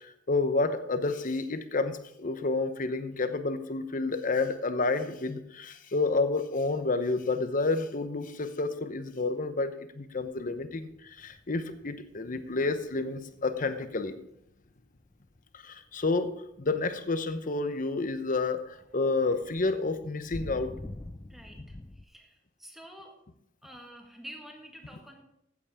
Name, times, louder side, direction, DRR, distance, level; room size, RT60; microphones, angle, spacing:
voice 1, 0.0-14.2 15.5-16.3 16.6-20.7, left 3 dB, 45° left, 10 dB, 0.9 m, -30 dB
sound 1, 10.2-15.6 16.0-22.0, left 1 dB, 15° left, 0.4 m, -47 dB
voice 2, 21.3-23.2 23.6-25.2, equal, ahead, 2 dB, 1.7 m, -48 dB
15.0 x 8.4 x 3.6 m, 0.77 s
head